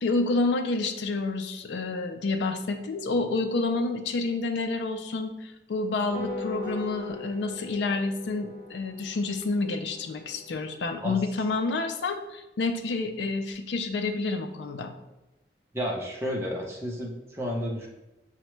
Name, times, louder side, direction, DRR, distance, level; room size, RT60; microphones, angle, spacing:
voice 1, 0.0-14.9, left 3 dB, 85° left, 7 dB, 0.4 m, -29 dB
sound 1, 6.1-10.8, left 3 dB, 35° left, 1.0 m, -40 dB
voice 2, 15.7-17.9, equal, 15° right, -2 dB, 0.6 m, -31 dB
5.9 x 2.1 x 3.1 m, 0.96 s
head